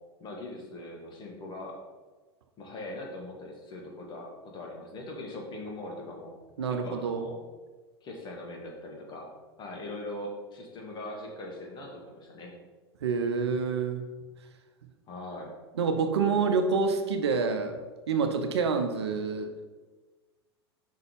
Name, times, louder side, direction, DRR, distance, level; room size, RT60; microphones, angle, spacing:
voice 1, 0.2-1.8 2.6-6.3 6.7-7.4 8.0-9.3 9.6-12.5 15.1-15.5, left 1 dB, 35° left, 0 dB, 1.8 m, -41 dB
voice 2, 6.6-7.3 13.0-14.1 15.8-17.8 18.1-19.7, right 5 dB, 80° right, 7 dB, 0.7 m, -27 dB
5.5 x 4.1 x 5.2 m, 1.3 s
hypercardioid pair, 95°, 14 cm